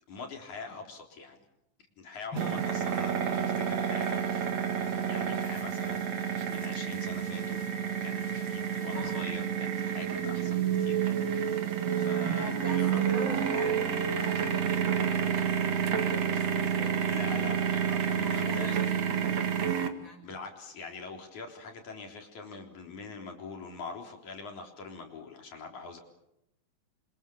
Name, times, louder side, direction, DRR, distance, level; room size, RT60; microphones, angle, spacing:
voice 1, 0.1-1.4 2.0-7.7 8.0-11.4 11.9-13.1 17.1-18.7 20.2-26.0, left 4 dB, 65° left, 3 dB, 5.2 m, -44 dB
sound 1, 2.4-19.9, right 8 dB, 55° right, 3.0 m, -29 dB
voice 2, 12.4-16.9 17.3-17.4 17.9-18.8 19.1-19.7 19.9-20.3, left 1 dB, 35° left, 4 dB, 7.4 m, -42 dB
29.5 x 25.0 x 7.1 m, 0.83 s
omnidirectional pair, 3.7 m